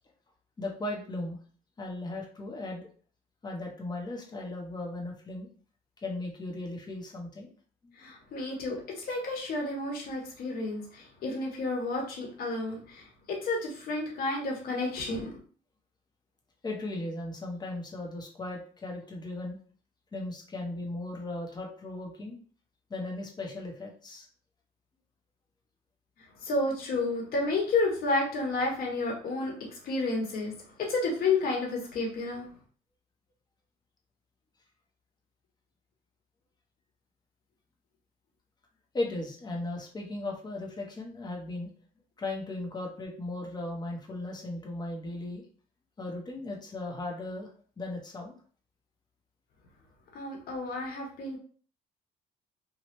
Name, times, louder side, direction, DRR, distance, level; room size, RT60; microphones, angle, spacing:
voice 1, 0.6-1.4 1.8-2.9 3.4-5.5 6.0-7.5 16.6-19.6 20.1-22.4 22.9-24.3 38.9-41.7 42.2-45.4 46.0-47.5 47.8-48.4, left 2 dB, 25° left, 0 dB, 1.0 m, -37 dB
voice 2, 8.0-15.4 26.4-29.5 29.8-30.5 30.8-32.4 50.1-51.4, left 3 dB, 60° left, -1 dB, 1.4 m, -31 dB
3.1 x 2.3 x 3.1 m, 0.43 s
cardioid pair, 110°, 17 cm